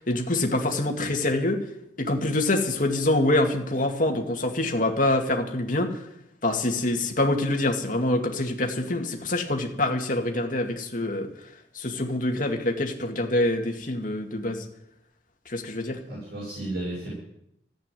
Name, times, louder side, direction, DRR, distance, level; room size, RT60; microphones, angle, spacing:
voice 1, 0.0-1.6 2.0-6.0 6.4-11.3 11.7-14.6 15.5-16.0, left 1 dB, 45° left, 2 dB, 2.3 m, -25 dB
voice 2, 15.8-17.2, right 1 dB, 60° right, -4 dB, 7.4 m, -34 dB
15.0 x 9.0 x 9.3 m, 0.79 s
head